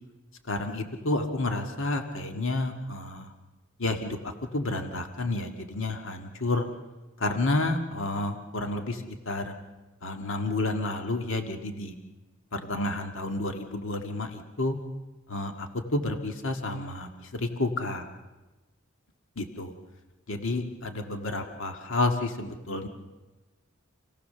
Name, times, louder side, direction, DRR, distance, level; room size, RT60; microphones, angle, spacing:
voice 1, 0.4-3.3 3.8-6.7 7.2-9.5 10.0-11.9 12.5-14.8 15.3-15.5 15.9-18.1 19.4-19.7 20.3-22.9, left 2 dB, 65° left, 5 dB, 1.9 m, -30 dB
29.0 x 17.0 x 6.8 m, 1.1 s
head